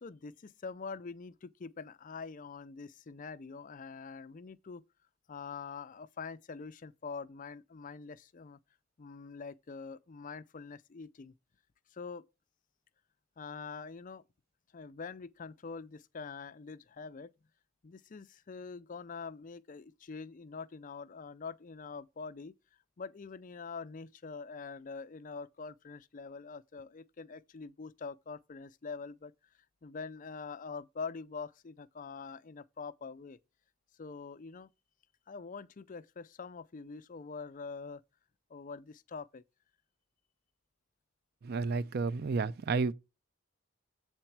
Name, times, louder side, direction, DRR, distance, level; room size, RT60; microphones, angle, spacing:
voice 1, 0.0-4.8 5.3-8.6 9.0-11.3 11.9-12.2 13.4-14.2 14.7-17.3 17.8-22.5 23.0-29.3 29.8-33.4 34.0-34.7 35.3-38.0 38.5-39.4, left 4 dB, 40° left, 0.4 m, -44 dB
voice 2, 41.4-42.9, right 4 dB, 50° right, 0.4 m, -31 dB
7.9 x 4.4 x 5.9 m
head